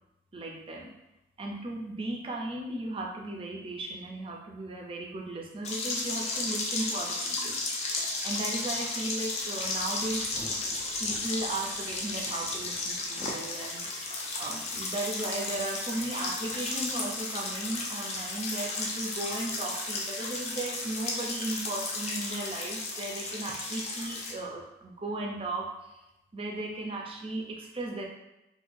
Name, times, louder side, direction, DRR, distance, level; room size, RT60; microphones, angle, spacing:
voice 1, 0.3-0.9 1.4-7.6 8.2-10.3 11.0-26.0 26.3-28.1, right 2 dB, 30° right, 0 dB, 0.5 m, -36 dB
sound 1, 5.6-24.3, left 3 dB, 40° left, 0.5 m, -34 dB
Thunder, 9.3-20.5, equal, 5° left, 0.9 m, -55 dB
3.8 x 2.7 x 2.6 m, 0.94 s
head